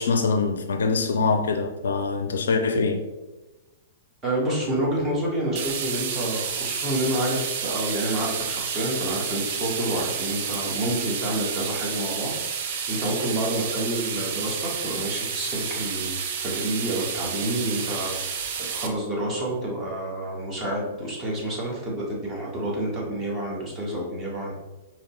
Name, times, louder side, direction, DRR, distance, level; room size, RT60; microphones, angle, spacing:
voice 1, 0.0-3.1, left 4 dB, 65° left, 7 dB, 0.4 m, -24 dB
voice 2, 4.2-12.6 12.9-18.4 18.7-24.5, right 1 dB, 20° right, -3 dB, 1.4 m, -28 dB
sound 1, 5.6-18.9, right 6 dB, 50° right, 0.5 m, -30 dB
4.9 x 3.0 x 3.1 m, 1.1 s
figure-of-eight pair, 105°, 0 cm